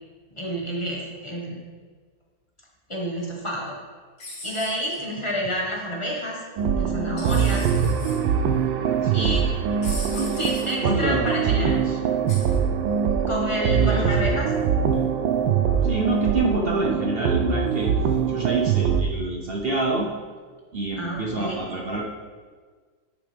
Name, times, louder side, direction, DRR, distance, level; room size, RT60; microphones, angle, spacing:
voice 1, 0.4-1.6 2.9-3.7 4.4-6.4 6.7-7.7 9.1-9.5 10.1-11.8 13.3-14.5 21.0-21.6, equal, 15° left, -3 dB, 1.2 m, -29 dB
sound 1, 4.2-5.0 7.2-8.2 9.8-10.7 12.3-12.6, left 2 dB, 65° left, 2.7 m, -38 dB
sound 2, 6.6-19.0, right 7 dB, 75° right, 1.3 m, -23 dB
voice 2, 9.0-9.3 10.1-10.3 10.8-12.0 13.8-14.2 14.9-15.1 15.8-17.9 18.3-20.1 20.7-22.0, right 2 dB, 60° right, -2 dB, 0.6 m, -27 dB
10.0 x 7.1 x 3.5 m, 1.5 s
omnidirectional pair, 2.1 m